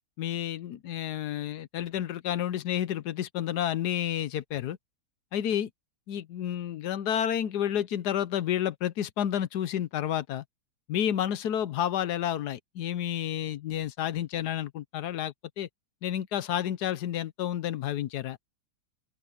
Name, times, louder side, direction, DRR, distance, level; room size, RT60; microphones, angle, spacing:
voice 1, 0.2-4.8 5.3-5.7 6.1-10.4 10.9-15.7 16.0-18.4, left 10 dB, 65° left, 1.1 m, -30 dB
omnidirectional pair, 2.3 m